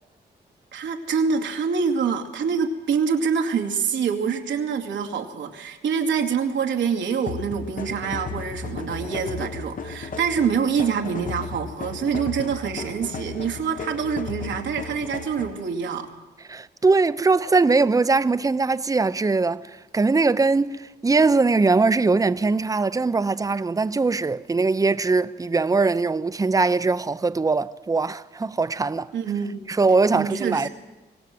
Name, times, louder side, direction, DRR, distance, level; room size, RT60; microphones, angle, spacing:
voice 1, 0.7-16.1 29.1-29.6 30.1-30.7, right 6 dB, 90° right, 2.4 m, -25 dB
sound 1, 7.3-15.7, left 5 dB, 50° left, 1.2 m, -35 dB
voice 2, 16.5-29.1 29.7-30.7, right 3 dB, 20° right, 0.7 m, -21 dB
24.0 x 18.0 x 7.8 m
cardioid pair, 90°, 18 cm